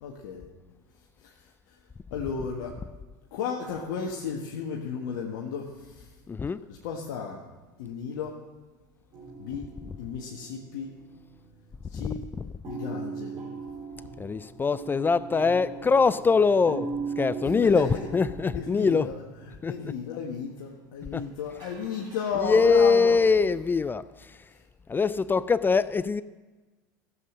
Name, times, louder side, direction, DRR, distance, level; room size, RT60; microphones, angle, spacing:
voice 1, 0.0-0.5 1.2-1.3 1.7-1.8 2.1-2.7 3.3-6.1 6.7-7.4 7.8-8.3 9.4-9.7 10.0-10.9 11.9-12.2 12.7-13.4 17.5-18.1 18.5-23.2 24.5-24.6, left 6 dB, 70° left, 1.6 m, -34 dB
voice 2, 6.3-6.6 14.2-16.9 17.2-19.1 19.6-19.7 21.1-21.2 22.4-24.0 24.9-26.2, left 4 dB, 20° left, 0.4 m, -23 dB
sound 1, 9.1-11.6 11.9-12.2 12.6-21.2 21.6-22.6, right 5 dB, 45° right, 4.9 m, -40 dB
14.5 x 7.9 x 6.5 m
hypercardioid pair, 85°, 11 cm